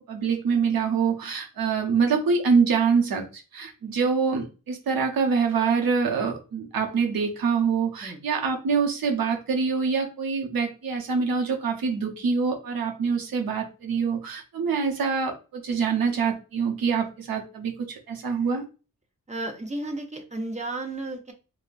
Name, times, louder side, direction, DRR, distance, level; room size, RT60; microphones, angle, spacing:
voice 1, 0.1-18.6, right 5 dB, 90° right, 0.7 m, -25 dB
voice 2, 19.3-21.3, right 2 dB, 20° right, 0.7 m, -33 dB
3.7 x 2.1 x 2.5 m
cardioid pair, 80°, 34 cm